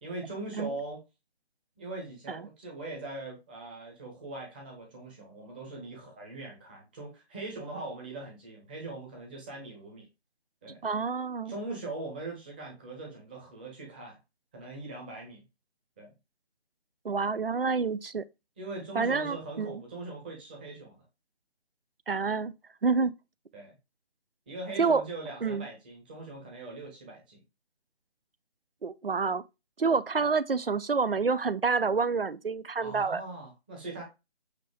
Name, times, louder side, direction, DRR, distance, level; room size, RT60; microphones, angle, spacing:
voice 1, 0.0-1.0 1.8-10.1 10.6-10.8 11.5-14.2 14.5-15.4 16.0-16.1 18.6-21.0 23.5-23.8 24.5-27.4 30.2-30.3 32.8-34.0, right 2 dB, 10° right, 1.1 m, -41 dB
voice 2, 10.8-11.5 17.0-18.2 18.9-19.8 22.1-22.5 22.8-23.1 24.8-25.0 25.4-25.7 28.8-29.4 29.8-33.2, right 4 dB, 60° right, 0.7 m, -28 dB
8.2 x 2.9 x 4.9 m
figure-of-eight pair, 155°, 32 cm